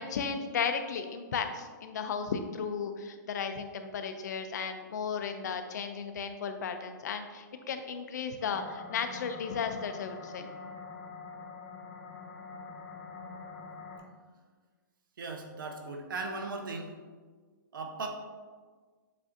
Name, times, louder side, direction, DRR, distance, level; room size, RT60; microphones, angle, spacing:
voice 1, 0.0-10.5, left 6 dB, 60° left, 7 dB, 0.4 m, -35 dB
sound 1, 8.4-14.0, left 4 dB, 90° left, 1.3 m, -45 dB
voice 2, 15.2-16.9 17.7-18.1, right 3 dB, 80° right, 3 dB, 0.8 m, -37 dB
7.3 x 2.5 x 2.6 m, 1.5 s
hypercardioid pair, 170°, 11 cm